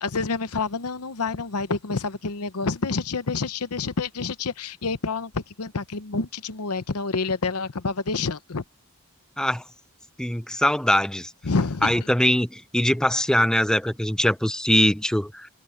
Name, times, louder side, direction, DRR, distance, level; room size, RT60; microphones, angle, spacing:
voice 1, 0.0-8.6 11.4-12.1, left 4 dB, 90° left, 0.9 m, -28 dB
voice 2, 10.2-11.3 11.8-15.5, equal, 5° left, 0.6 m, -22 dB
head